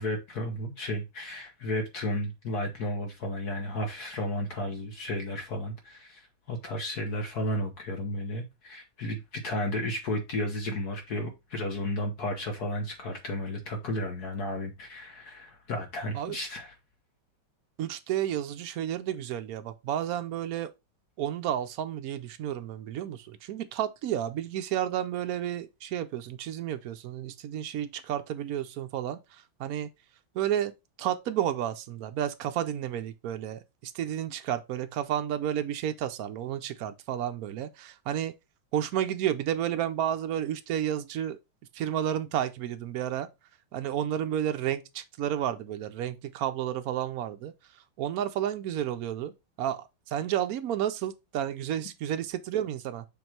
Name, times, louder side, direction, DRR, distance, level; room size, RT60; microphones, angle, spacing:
voice 1, 0.0-16.7, left 1 dB, 55° left, 1.4 m, -33 dB
voice 2, 17.8-20.7 21.2-29.9 30.3-30.7 31.0-38.3 38.7-41.4 41.7-43.3 43.7-47.5 48.0-53.1, right 10 dB, 85° right, 0.7 m, -31 dB
7.1 x 3.1 x 4.4 m
omnidirectional pair, 2.2 m